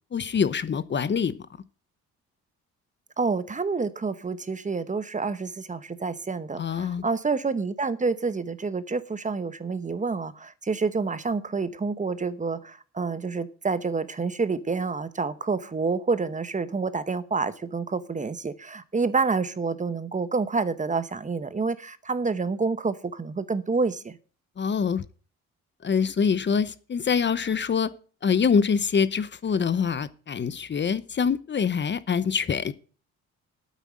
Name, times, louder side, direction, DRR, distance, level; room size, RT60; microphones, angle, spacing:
voice 1, 0.1-1.5 6.6-7.0 24.6-25.0 25.8-27.9 28.2-32.7, left 6 dB, 35° left, 0.8 m, -25 dB
voice 2, 3.2-24.2, right 4 dB, 25° right, 0.9 m, -28 dB
9.0 x 8.4 x 7.6 m
cardioid pair, 90°, 30 cm